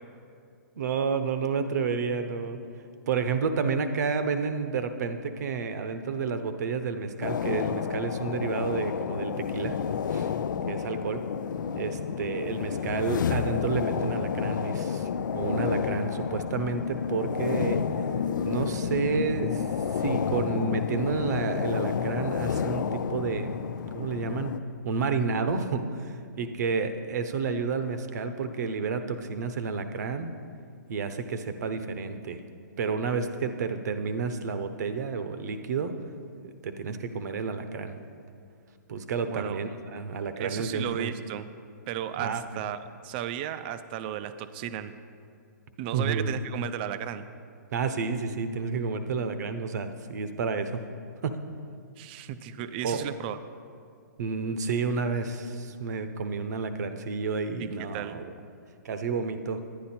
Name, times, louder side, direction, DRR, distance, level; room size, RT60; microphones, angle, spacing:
voice 1, 0.8-2.6 3.1-9.7 10.1-10.3 10.7-11.3 11.7-15.1 15.3-17.8 18.4-19.6 20.0-23.6 23.9-24.5 24.8-30.3 30.9-32.4 32.8-35.9 36.4-38.0 38.9-41.1 42.2-42.6 45.9-46.3 47.7-50.8 51.2-51.4 52.8-53.1 54.2-58.3 58.8-59.6, right 5 dB, 60° right, 9 dB, 0.8 m, -30 dB
sound 1, 7.2-24.6, left 7 dB, 80° left, 0.5 m, -30 dB
voice 2, 39.2-39.6 40.4-41.5 41.9-44.9 45.8-47.2 52.0-53.4 57.6-58.2, right 10 dB, 30° right, 12 dB, 0.4 m, -34 dB
10.0 x 10.0 x 4.3 m, 2.4 s
hypercardioid pair, 150°, 10 cm